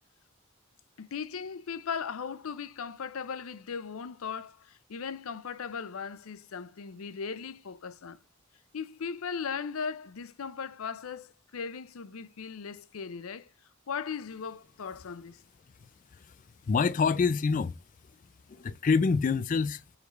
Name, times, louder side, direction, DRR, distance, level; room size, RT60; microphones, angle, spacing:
voice 1, 1.0-8.2 8.7-13.5 13.9-15.4, left 6 dB, 90° left, 0.6 m, -38 dB
voice 2, 16.7-17.7 18.5-19.8, left 5 dB, 40° left, 0.3 m, -26 dB
7.9 x 4.9 x 3.1 m
head